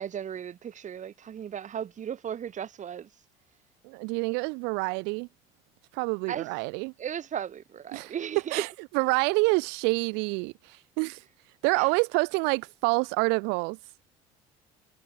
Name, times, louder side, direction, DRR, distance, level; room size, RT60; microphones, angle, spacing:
voice 1, 0.0-3.1 6.3-6.5 7.0-8.6 11.7-11.9, right 9 dB, 45° right, 3.6 m, -36 dB
voice 2, 3.8-5.3 5.9-6.9 7.9-8.1 8.5-8.7 8.9-11.2 11.6-13.8, right 31 dB, 70° right, 3.1 m, -27 dB
hypercardioid pair, 70°, 18 cm